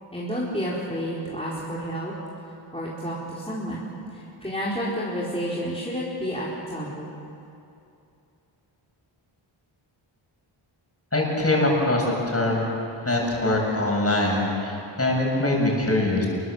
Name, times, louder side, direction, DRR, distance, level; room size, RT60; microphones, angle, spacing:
voice 1, 0.1-2.1 2.7-7.1, equal, 10° left, -7 dB, 4.4 m, -30 dB
voice 2, 11.1-12.7 13.0-16.3, left 2 dB, 30° left, -1 dB, 7.4 m, -23 dB
27.5 x 22.5 x 7.9 m, 2.7 s
wide cardioid pair, 95°, 50 cm